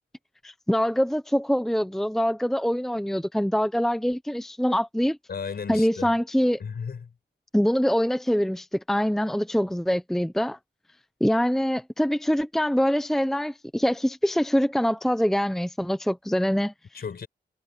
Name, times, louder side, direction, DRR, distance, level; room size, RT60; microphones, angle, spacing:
voice 1, 0.4-5.2 5.7-6.6 7.5-10.6 11.2-17.0, equal, ahead, 0.8 m, -24 dB
voice 2, 5.3-6.1 6.6-7.1 16.9-17.3, left 6 dB, 55° left, 6.5 m, -34 dB
wide cardioid pair, 135°, 19 cm